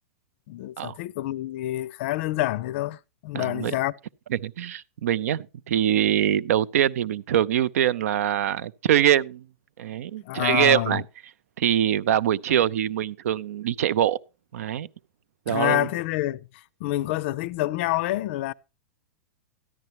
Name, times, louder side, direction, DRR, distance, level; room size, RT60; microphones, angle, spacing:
voice 1, 0.5-3.9 10.2-11.0 15.5-18.5, left 16 dB, 50° left, 0.4 m, -27 dB
voice 2, 3.3-3.7 4.3-9.4 9.8-11.0 11.6-14.2 14.5-14.9 15.5-15.9, right 10 dB, 75° right, 0.5 m, -23 dB
13.5 x 11.0 x 2.9 m
supercardioid pair, 145°, 8 cm